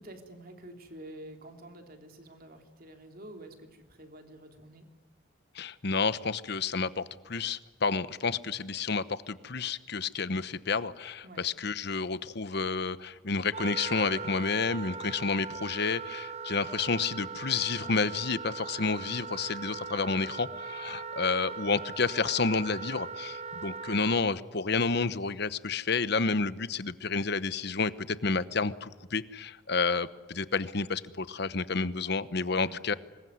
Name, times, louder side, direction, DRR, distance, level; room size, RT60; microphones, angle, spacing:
voice 1, 0.0-4.8 11.2-11.4 32.5-32.8, right 1 dB, 50° right, 4 dB, 3.3 m, -48 dB
voice 2, 5.5-32.9, left 4 dB, 60° left, 14 dB, 1.0 m, -30 dB
Wind instrument woodwind instrument, 13.5-24.2, right 5 dB, 35° right, 0.7 m, -40 dB
26.0 x 21.5 x 9.5 m, 1.3 s
head